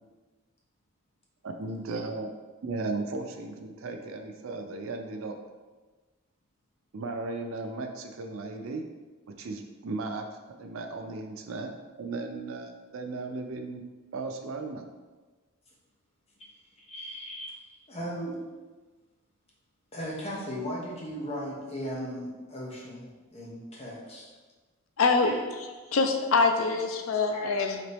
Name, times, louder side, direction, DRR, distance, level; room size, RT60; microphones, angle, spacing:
voice 1, 1.4-2.3 2.6-5.4 6.9-8.9 9.3-10.3 10.6-13.8 14.1-14.8, right 3 dB, 90° right, 4 dB, 0.5 m, -36 dB
voice 2, 16.8-18.4 19.9-24.3 25.2-25.4 25.8-26.0 26.6-26.8 27.3-27.6, equal, 30° left, -3 dB, 0.9 m, -37 dB
voice 3, 25.0-25.3 25.9-27.8, left 4 dB, 80° left, 5 dB, 0.4 m, -24 dB
4.1 x 3.0 x 3.3 m, 1.3 s
head